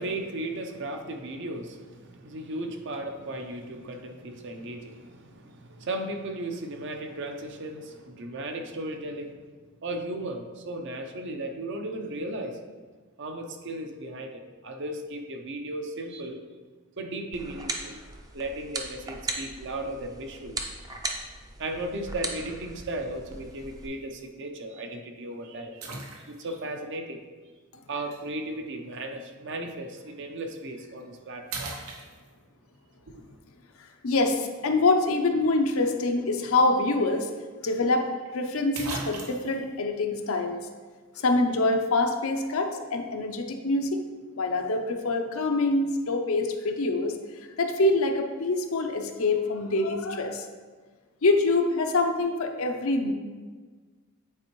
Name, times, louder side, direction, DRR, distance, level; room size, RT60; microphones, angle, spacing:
voice 1, 0.0-9.5 9.8-12.6 13.2-16.4 17.0-18.0 18.3-20.7 21.6-25.9 26.3-27.2 27.9-31.7 33.1-33.2, right 1 dB, 55° right, 4 dB, 0.7 m, -36 dB
sound 1, 17.3-23.9, right 2 dB, 15° right, 0.5 m, -38 dB
sound 2, 23.3-23.6 24.3-24.4 25.8-26.6 28.1-28.2 30.4-30.6 31.0-31.2 31.5-32.6 36.7-36.8 37.1-37.2 38.3-38.4 38.7-39.6, right 3 dB, 80° right, 0.9 m, -38 dB
voice 2, 34.0-37.3 37.6-38.1 38.3-40.6 41.2-44.0 44.4-47.2 47.6-50.5 51.2-53.1, left 2 dB, 70° left, 4 dB, 0.6 m, -25 dB
8.8 x 4.3 x 3.1 m, 1.4 s
head